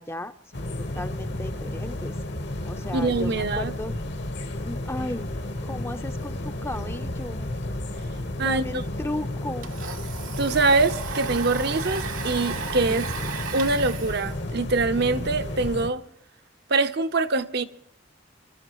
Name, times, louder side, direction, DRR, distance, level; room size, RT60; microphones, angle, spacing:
voice 1, 0.0-2.1 2.6-4.0 4.6-7.5 8.4-9.7 12.9-13.4, left 1 dB, 10° left, 0.6 m, -35 dB
sound 1, 0.5-15.9, left 1 dB, 60° left, 1.3 m, -32 dB
sound 2, 1.5-9.2, equal, 80° left, 2.9 m, -44 dB
voice 2, 2.9-3.7 8.4-8.6 10.4-13.0 13.5-16.0 16.7-17.6, right 3 dB, 55° right, 0.8 m, -24 dB
Domestic sounds home sounds, 9.5-15.7, right 6 dB, 90° right, 1.5 m, -36 dB
26.0 x 13.0 x 3.1 m
head